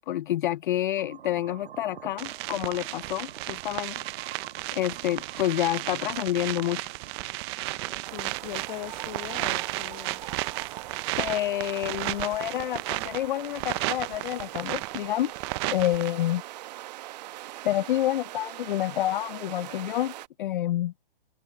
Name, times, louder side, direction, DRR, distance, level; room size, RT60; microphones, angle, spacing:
voice 1, 0.1-4.0 4.7-6.8 11.2-15.3 15.7-16.4 17.6-20.1 20.4-20.9, left 13 dB, 55° left, 0.5 m, -28 dB
sound 1, 1.0-15.0, right 8 dB, 85° right, 1.4 m, -47 dB
sound 2, 2.2-16.1, right 23 dB, 25° right, 0.7 m, -34 dB
sound 3, 8.0-20.3, right 16 dB, 45° right, 1.4 m, -42 dB
voice 2, 8.1-10.2, left 22 dB, 35° left, 0.9 m, -40 dB
open air
hypercardioid pair, 145°, 30 cm